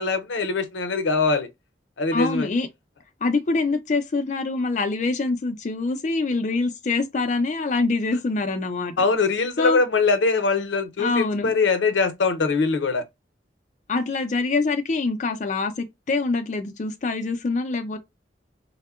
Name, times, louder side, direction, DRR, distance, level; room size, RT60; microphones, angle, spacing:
voice 1, 0.0-1.5 2.0-2.5 9.0-13.0, left 4 dB, 90° left, 0.6 m, -22 dB
voice 2, 2.1-2.7 3.2-8.9 9.6-9.8 11.0-11.5 13.9-18.0, left 3 dB, 40° left, 0.4 m, -25 dB
3.5 x 2.0 x 2.3 m
head